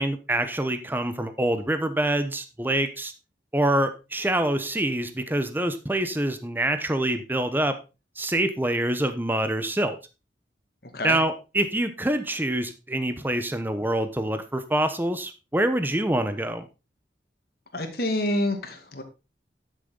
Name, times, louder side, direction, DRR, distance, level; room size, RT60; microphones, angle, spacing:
voice 1, 0.0-3.1 3.5-7.8 8.2-10.0 11.0-16.7, right 1 dB, 10° right, 9 dB, 0.9 m, -25 dB
voice 2, 17.7-19.0, left 1 dB, 60° left, 5 dB, 2.2 m, -27 dB
11.5 x 6.8 x 3.9 m, 0.28 s
head